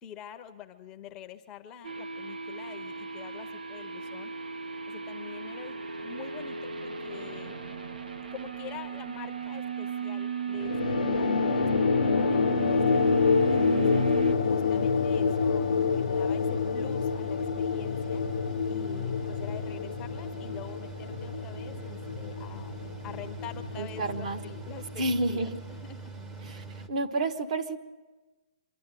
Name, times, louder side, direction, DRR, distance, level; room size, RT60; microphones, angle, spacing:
voice 1, 0.0-7.6 8.3-13.0 13.5-14.1 14.4-18.3 18.7-22.8 23.0-26.1, left 8 dB, 15° left, 8 dB, 0.6 m, -46 dB
sound 1, 1.8-14.3, right 6 dB, 90° right, 1.5 m, -35 dB
sound 2, 10.6-25.5, left 5 dB, 80° left, 0.8 m, -28 dB
Mechanical fan, 11.5-26.9, right 4 dB, 15° right, 0.8 m, -43 dB
voice 2, 23.8-24.4 25.0-25.6 26.5-27.8, right 2 dB, 50° right, 8 dB, 1.4 m, -30 dB
25.5 x 12.0 x 9.0 m, 1.2 s
hypercardioid pair, 165°, 5 cm